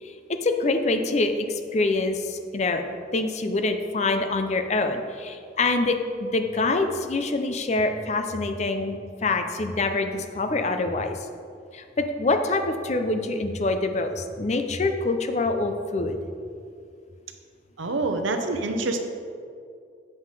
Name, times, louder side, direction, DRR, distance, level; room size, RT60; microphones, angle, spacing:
voice 1, 0.0-2.8 3.1-11.2 11.7-16.2, left 2 dB, 35° left, 6 dB, 0.5 m, -25 dB
voice 2, 17.8-19.0, right 2 dB, 80° right, 6 dB, 0.7 m, -26 dB
7.5 x 5.7 x 4.7 m, 2.4 s
head